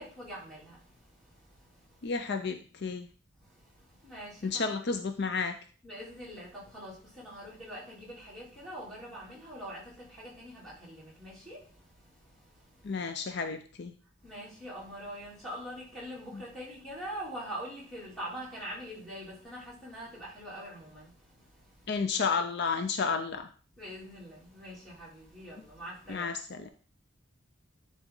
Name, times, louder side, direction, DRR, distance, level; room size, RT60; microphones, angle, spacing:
voice 1, 0.0-2.1 3.4-4.7 5.8-13.0 14.2-21.9 23.8-26.3, equal, ahead, 3.1 m, -44 dB
voice 2, 2.0-3.1 4.4-5.6 12.8-13.9 16.3-16.4 21.9-23.5 26.1-26.7, left 5 dB, 55° left, 0.5 m, -31 dB
10.0 x 4.1 x 3.7 m
head